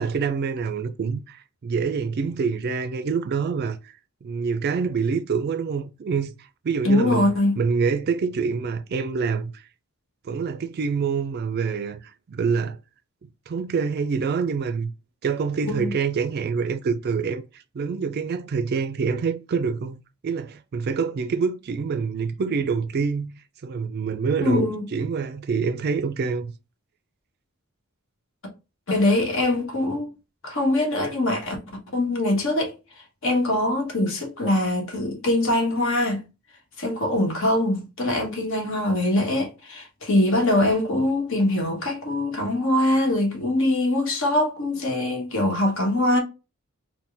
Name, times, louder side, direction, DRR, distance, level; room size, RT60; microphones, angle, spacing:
voice 1, 0.0-3.9 4.2-6.3 6.6-7.3 7.6-9.6 10.2-12.8 13.5-14.9 15.2-26.5, right 5 dB, 45° right, 0.3 m, -26 dB
voice 2, 6.8-7.6 15.6-15.9 24.4-24.8 28.9-30.1 30.4-31.6 31.9-32.7 33.2-36.2 36.8-46.2, left 1 dB, 65° left, 1.2 m, -23 dB
4.2 x 2.2 x 3.3 m
head